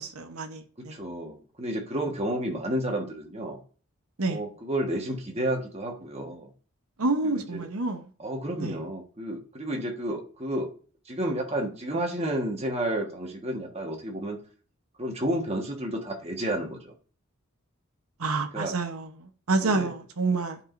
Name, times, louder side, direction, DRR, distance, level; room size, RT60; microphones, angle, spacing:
voice 1, 0.0-1.0 4.2-4.4 7.0-8.1 8.6-8.8 18.2-20.6, right 3 dB, 80° right, 1.0 m, -28 dB
voice 2, 0.9-3.6 4.2-6.5 7.2-7.6 8.2-10.7 11.1-14.4 15.0-16.9 18.5-18.7 19.6-19.9, right 1 dB, 30° right, 1.4 m, -31 dB
11.0 x 4.8 x 2.6 m
head